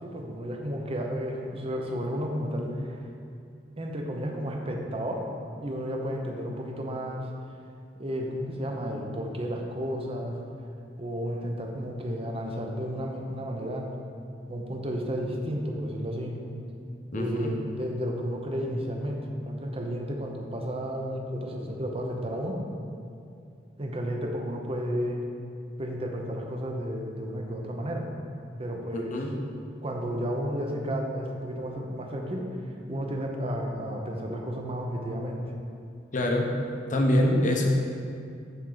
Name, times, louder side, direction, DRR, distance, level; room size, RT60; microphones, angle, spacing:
voice 1, 0.0-3.1 3.8-5.2 5.6-7.3 8.0-10.4 11.0-13.9 14.5-16.4 17.1-22.6 23.8-25.2 25.8-28.1 28.6-29.2 29.8-32.6 32.9-35.5, equal, 35° right, 1 dB, 0.8 m, -32 dB
voice 2, 17.1-17.5 28.9-29.3 36.1-36.5 36.9-37.7, left 1 dB, 45° left, 1 dB, 0.9 m, -25 dB
11.0 x 4.4 x 4.0 m, 2.4 s
head